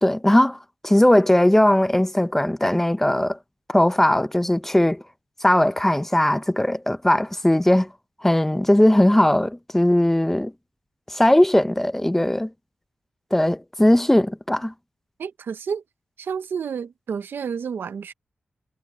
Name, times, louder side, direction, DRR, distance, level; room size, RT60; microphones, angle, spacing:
voice 1, 0.0-3.4 3.7-5.0 5.4-7.9 8.2-10.5 11.1-12.5 13.3-14.7, left 1 dB, 10° left, 0.6 m, -19 dB
voice 2, 15.2-15.8 16.2-18.1, right 6 dB, 85° right, 0.9 m, -30 dB
wide cardioid pair, 115°, 4 cm